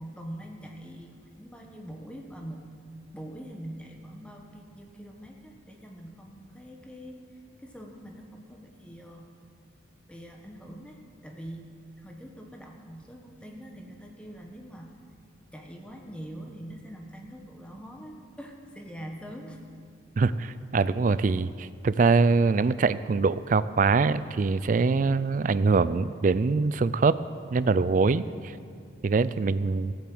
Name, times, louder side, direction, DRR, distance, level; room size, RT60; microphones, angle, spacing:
voice 1, 0.0-2.7 3.1-7.2 7.6-9.3 10.1-11.7 12.0-14.9 15.5-19.6 28.2-28.5, equal, 5° left, 1 dB, 1.1 m, -43 dB
voice 2, 20.2-27.2 27.5-28.2 29.0-29.9, right 4 dB, 40° right, 16 dB, 0.3 m, -23 dB
14.0 x 8.1 x 7.7 m, 2.3 s
head